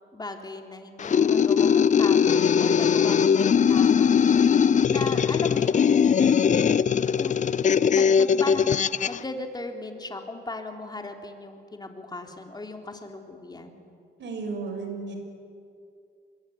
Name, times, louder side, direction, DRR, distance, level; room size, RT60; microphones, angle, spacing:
voice 1, 0.1-6.0 6.4-6.8 7.2-7.3 7.9-13.8, left 2 dB, 20° left, 4 dB, 3.7 m, -37 dB
sound 1, 1.0-9.2, left 7 dB, 40° left, 0.6 m, -20 dB
voice 2, 14.2-15.2, right 4 dB, 65° right, 5 dB, 6.3 m, -33 dB
25.5 x 22.0 x 9.7 m, 2.4 s
cardioid pair, 90°, 20 cm